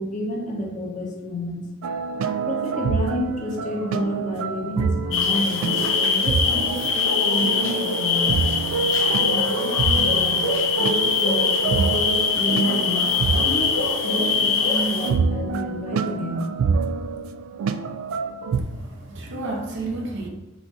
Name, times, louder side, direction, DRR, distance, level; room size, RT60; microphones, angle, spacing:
voice 1, 0.0-1.6 2.5-8.4 9.1-10.5 10.8-13.0 13.5-16.5, equal, 40° left, 0 dB, 0.8 m, -29 dB
sound 1, 1.8-18.6, right 5 dB, 90° right, 0.3 m, -27 dB
sound 2, 5.1-15.1, left 5 dB, 70° left, 0.7 m, -22 dB
voice 2, 18.5-20.3, right 2 dB, 65° right, 1 dB, 0.8 m, -31 dB
4.2 x 2.6 x 4.6 m, 1.0 s
head